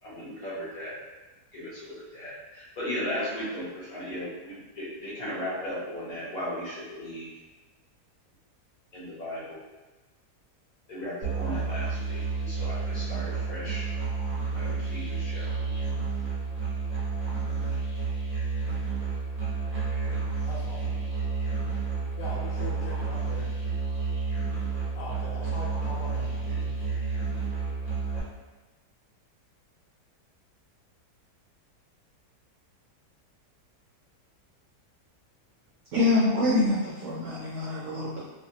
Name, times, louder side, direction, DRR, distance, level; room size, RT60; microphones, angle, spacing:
voice 1, 0.0-1.0 1.5-7.3 8.9-9.6 10.9-13.9 14.5-15.9, equal, 40° left, -8 dB, 0.7 m, -36 dB
Musical instrument, 11.2-28.2, right 4 dB, 40° right, 1.0 m, -30 dB
voice 2, 20.5-20.9 22.2-23.5 24.9-26.9, left 1 dB, 80° left, -3 dB, 1.3 m, -40 dB
voice 3, 35.9-38.2, left 2 dB, 65° right, -7 dB, 0.8 m, -25 dB
2.7 x 2.6 x 2.8 m, 1.2 s
omnidirectional pair, 1.8 m